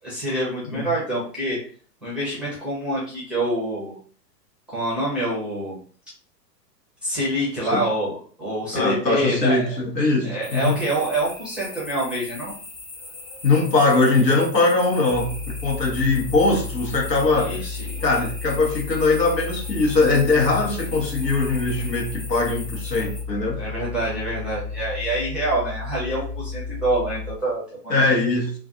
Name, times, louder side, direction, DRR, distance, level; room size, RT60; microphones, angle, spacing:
voice 1, 0.0-1.6 2.0-4.0 4.7-5.8 7.0-9.6 10.2-12.5 17.4-18.0 23.6-28.2, right 1 dB, ahead, -6 dB, 0.5 m, -26 dB
voice 2, 8.7-10.8 13.4-15.3 15.6-17.7 18.0-23.6 27.9-28.5, left 3 dB, 85° left, 0 dB, 1.0 m, -21 dB
sound 1, 10.4-23.2, left 2 dB, 25° left, 0.9 m, -40 dB
sound 2, 15.1-27.4, left 4 dB, 55° left, 0.8 m, -33 dB
2.4 x 2.4 x 2.4 m, 0.44 s
figure-of-eight pair, 105°, 49 cm